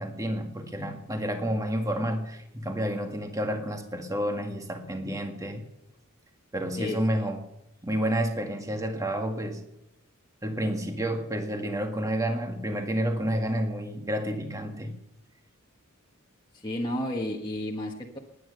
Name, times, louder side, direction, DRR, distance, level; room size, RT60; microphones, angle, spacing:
voice 1, 0.0-5.6 6.5-7.4 7.8-9.6 10.4-14.9, equal, 15° right, 4 dB, 1.9 m, -30 dB
voice 2, 16.5-18.2, left 1 dB, 20° left, -1 dB, 1.4 m, -32 dB
19.0 x 10.0 x 6.7 m, 0.86 s
head